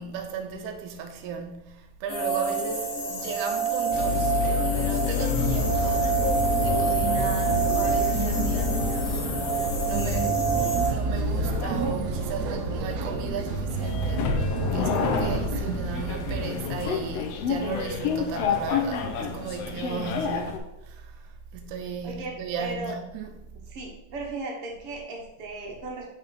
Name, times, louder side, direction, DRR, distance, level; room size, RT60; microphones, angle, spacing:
voice 1, 0.0-6.1 6.6-10.4 10.9-20.6 20.8-23.4, right 5 dB, 90° right, 2.3 m, -36 dB
sound 1, 2.1-10.9, right 5 dB, 55° left, 1.9 m, -27 dB
sound 2, 3.9-20.6, left 6 dB, 75° left, 1.5 m, -30 dB
sound 3, 5.4-16.5, right 4 dB, 75° right, 1.8 m, -30 dB
voice 2, 22.0-22.9 23.7-26.1, right 2 dB, 55° right, 1.9 m, -36 dB
5.7 x 5.5 x 4.0 m
omnidirectional pair, 3.4 m